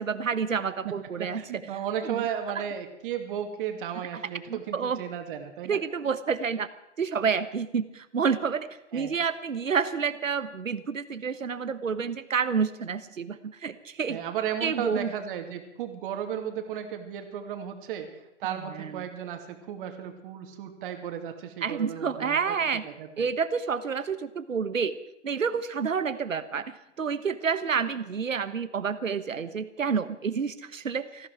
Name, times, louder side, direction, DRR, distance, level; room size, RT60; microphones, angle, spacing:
voice 1, 0.0-1.4 2.0-2.2 4.5-5.0 5.7-6.7 7.0-14.2 14.6-15.1 18.7-19.0 21.6-22.8 23.2-25.0 25.2-31.3, right 6 dB, 90° right, 13 dB, 1.3 m, -29 dB
voice 2, 0.8-5.8 8.9-9.2 14.1-22.6 22.8-23.3, right 9 dB, 45° right, 6 dB, 2.6 m, -35 dB
19.0 x 15.0 x 4.8 m, 0.89 s
hypercardioid pair, 135°, 38 cm